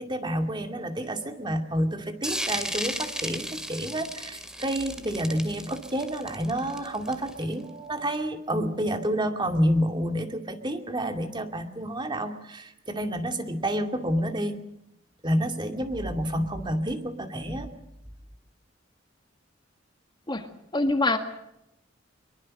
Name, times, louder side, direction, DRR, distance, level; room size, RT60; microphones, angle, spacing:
voice 1, 0.0-14.6 15.2-17.7, equal, 25° right, 2.4 m, -29 dB
sound 1, 2.2-7.5, equal, 5° right, 2.3 m, -34 dB
voice 2, 20.7-21.2, left 2 dB, 25° left, 1.7 m, -24 dB
24.0 x 23.0 x 6.5 m
head